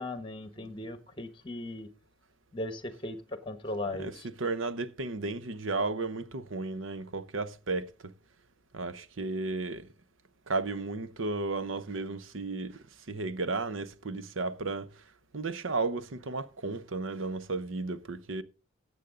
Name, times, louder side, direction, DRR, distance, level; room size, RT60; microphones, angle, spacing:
voice 1, 0.0-1.9 2.5-4.3, left 1 dB, 25° left, 1.2 m, -38 dB
voice 2, 4.0-8.1 8.7-9.9 10.5-12.8 13.1-14.9 15.3-18.4, right 3 dB, 75° right, 0.8 m, -34 dB
13.5 x 8.2 x 3.8 m
head